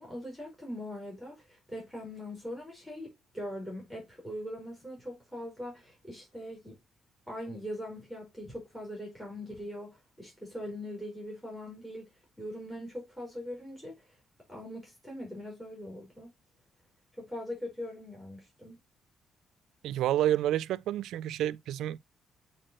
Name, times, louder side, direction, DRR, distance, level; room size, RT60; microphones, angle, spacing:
voice 1, 0.0-6.8 7.3-12.1 12.4-14.2 14.5-16.3 17.2-18.8, left 1 dB, 5° left, 4.6 m, -41 dB
voice 2, 19.8-22.0, right 12 dB, 85° right, 0.3 m, -29 dB
8.9 x 4.6 x 3.0 m
cardioid pair, 90°, 0 cm